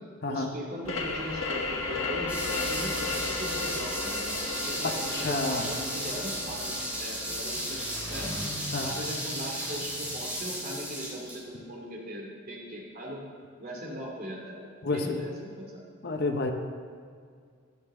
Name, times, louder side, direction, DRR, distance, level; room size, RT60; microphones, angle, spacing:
voice 1, 0.3-8.3 8.8-13.2 13.6-15.8, equal, 45° right, -2 dB, 2.7 m, -39 dB
sound 1, 0.8-10.2, left 3 dB, 70° left, 1.6 m, -35 dB
sound 2, 2.3-11.4, right 1 dB, 5° right, 3.8 m, -35 dB
Engine, 4.0-10.5, equal, 15° left, 3.1 m, -44 dB
voice 2, 4.8-5.7 8.7-8.9 14.8-15.2 16.0-16.5, left 3 dB, 50° left, 4 dB, 0.9 m, -30 dB
15.5 x 10.5 x 3.8 m, 2.1 s
head